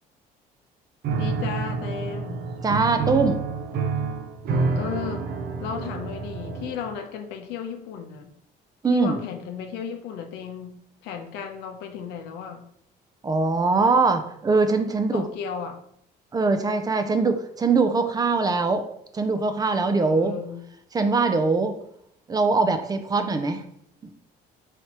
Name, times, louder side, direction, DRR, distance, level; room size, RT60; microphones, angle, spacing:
Piano, 1.0-7.0, right 4 dB, 65° right, 0.6 m, -28 dB
voice 1, 1.2-2.4 4.8-5.3 5.6-8.3 8.9-12.6 14.9-15.8 20.0-20.6, left 7 dB, 90° left, 5 dB, 0.6 m, -34 dB
voice 2, 2.6-3.4 8.8-9.2 13.2-15.3 16.3-18.9 19.1-20.3 20.9-21.7 22.3-23.6, right 4 dB, 25° right, 8 dB, 0.4 m, -22 dB
4.2 x 3.3 x 2.9 m, 0.73 s
cardioid pair, 110°, 17 cm